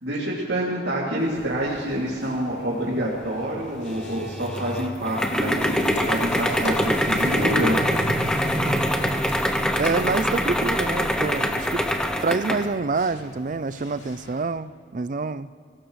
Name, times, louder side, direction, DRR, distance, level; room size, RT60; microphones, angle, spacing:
voice 1, 0.0-5.5 6.0-7.8, right 1 dB, 75° right, -6 dB, 2.7 m, -27 dB
sound 1, 1.2-14.4, equal, 85° left, 3.0 m, -35 dB
sound 2, 3.9-12.7, equal, 5° left, 0.7 m, -24 dB
voice 2, 9.8-11.9 12.2-15.5, right 4 dB, 45° right, 14 dB, 0.4 m, -26 dB
24.5 x 17.5 x 3.2 m, 2.4 s
head